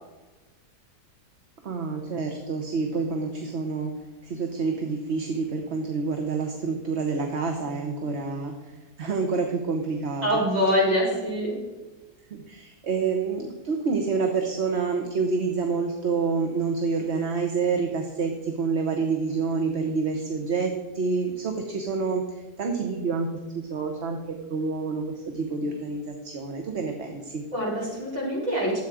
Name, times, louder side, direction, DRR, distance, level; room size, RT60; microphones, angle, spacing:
voice 1, 1.6-10.4 12.3-27.5, right 4 dB, 50° right, 3 dB, 1.3 m, -28 dB
voice 2, 10.2-11.5 27.5-28.8, equal, 25° right, -6 dB, 5.0 m, -24 dB
13.0 x 8.3 x 5.0 m, 1.2 s
omnidirectional pair, 1.7 m